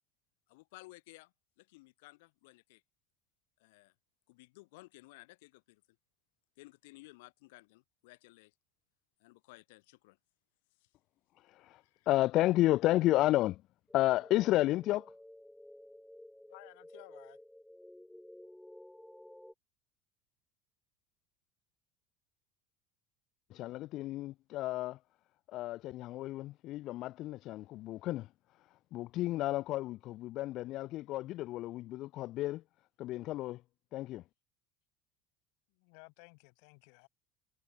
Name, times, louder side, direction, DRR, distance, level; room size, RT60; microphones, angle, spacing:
voice 1, 0.5-2.8 3.6-3.9 4.3-5.8 6.6-8.5 9.2-10.2 10.8-10.9 11.8-12.1, left 23 dB, 80° left, 3.8 m, -57 dB
voice 2, 11.5-11.8 12.1-13.6 13.9-15.1 23.5-25.0 25.5-28.3 28.9-32.6 33.0-33.6 33.9-34.2, left 16 dB, 40° left, 0.4 m, -32 dB
sound 1, 13.9-19.5, left 1 dB, ahead, 5.4 m, -53 dB
voice 3, 16.5-17.4 35.7-37.1, left 40 dB or more, 60° left, 4.3 m, -56 dB
cardioid pair, 170°, 0 cm